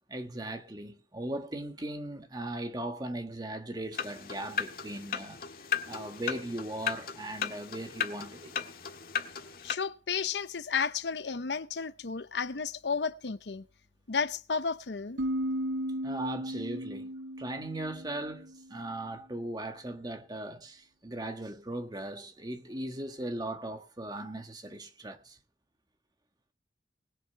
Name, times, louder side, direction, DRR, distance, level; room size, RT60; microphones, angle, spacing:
voice 1, 0.1-5.4 5.9-8.6 16.0-17.1 17.4-25.4, right 1 dB, 25° right, 1.6 m, -38 dB
sound 1, 3.9-9.7, left 7 dB, 55° left, 1.6 m, -36 dB
voice 2, 9.6-13.7 14.1-15.2, left 5 dB, 80° left, 0.8 m, -32 dB
sound 2, 15.2-18.8, equal, 85° right, 0.7 m, -35 dB
20.0 x 7.3 x 5.7 m
head